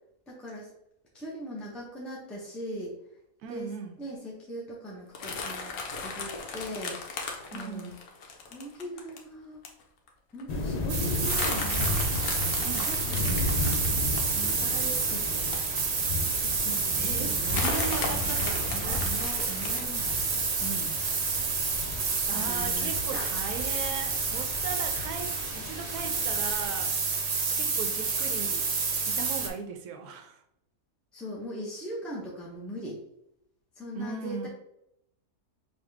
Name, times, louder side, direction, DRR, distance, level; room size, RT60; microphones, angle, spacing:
voice 1, 0.3-0.7 1.1-2.9 3.5-3.7 4.0-5.7 6.0-7.0 7.5-7.9 8.5-9.6 10.3-12.1 12.8-13.6 14.3-15.5 16.4-17.5 18.1-20.9 22.3-23.2 31.1-33.0 33.8-34.5, equal, ahead, -6 dB, 0.5 m, -40 dB
voice 2, 3.4-4.0 7.5-7.9 12.6-12.9 17.0-19.1 22.3-27.0 27.5-28.7 29.1-30.4 33.9-34.5, right 6 dB, 75° right, 5 dB, 1.1 m, -38 dB
sound 1, 5.1-9.2 9.6-9.8 10.1-10.2 10.4-10.6 11.2-16.2 16.7-16.8 17.4-19.9, left 4 dB, 70° left, 1.2 m, -36 dB
sound 2, 10.5-26.7, left 3 dB, 90° left, 0.3 m, -35 dB
sound 3, 10.9-29.5, right 4 dB, 50° right, 0.9 m, -29 dB
5.6 x 2.4 x 3.3 m, 0.80 s
omnidirectional pair, 1.7 m